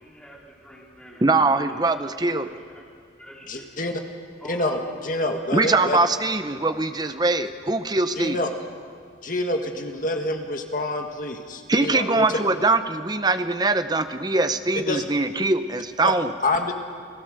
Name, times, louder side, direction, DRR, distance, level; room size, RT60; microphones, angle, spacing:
voice 1, 0.0-1.2 1.5-3.7 4.4-5.4, equal, 5° left, -5 dB, 4.2 m, -46 dB
voice 2, 1.2-2.5 5.5-8.4 11.7-16.3, right 3 dB, 20° right, 10 dB, 0.8 m, -22 dB
voice 3, 3.5-4.0 4.5-6.0 8.2-8.5 9.2-12.4 14.8-15.1 16.0-16.1 16.4-16.7, left 2 dB, 45° left, 4 dB, 1.9 m, -27 dB
29.0 x 18.0 x 6.6 m, 2.1 s
head